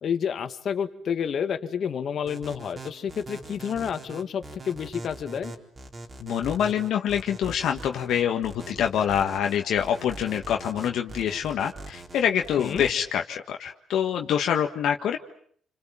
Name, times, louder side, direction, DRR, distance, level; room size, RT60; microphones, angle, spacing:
voice 1, 0.0-5.5 12.6-12.8, left 7 dB, 60° left, 8 dB, 2.1 m, -29 dB
sound 1, 2.3-12.9, right 2 dB, 35° right, 4.1 m, -41 dB
voice 2, 6.2-15.2, left 9 dB, 75° left, 3 dB, 1.6 m, -26 dB
28.5 x 26.0 x 7.6 m, 0.63 s
cardioid pair, 90°, 0 cm